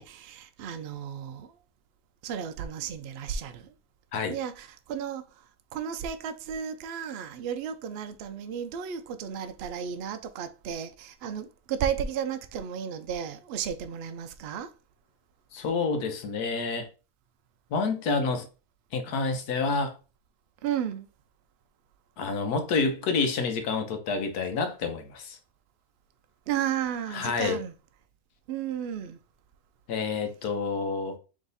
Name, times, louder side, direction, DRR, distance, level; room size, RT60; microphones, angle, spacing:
voice 1, 0.0-1.5 2.2-3.7 4.3-5.2 5.7-14.7 20.6-21.1 26.5-27.7 28.5-29.2, right 8 dB, 85° right, 0.5 m, -33 dB
voice 2, 15.5-16.9 17.7-18.5 18.9-19.9 22.2-25.4 27.1-27.6 29.9-31.2, left 4 dB, 85° left, 1.4 m, -28 dB
3.6 x 3.2 x 3.9 m
omnidirectional pair, 1.6 m